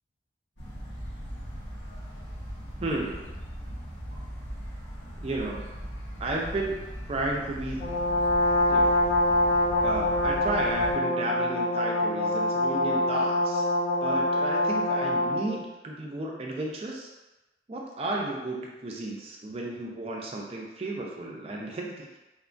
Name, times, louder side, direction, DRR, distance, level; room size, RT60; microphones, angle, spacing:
sound 1, 0.6-10.9, equal, 75° left, 0.9 m, -39 dB
voice 1, 2.8-3.3 5.2-5.7 6.2-7.9 8.7-9.0 9.8-13.7 14.0-17.1 17.7-22.1, right 2 dB, 30° right, -1 dB, 0.3 m, -33 dB
Brass instrument, 7.8-15.5, left 1 dB, 45° left, 0.6 m, -25 dB
2.9 x 2.2 x 2.5 m, 1.1 s
head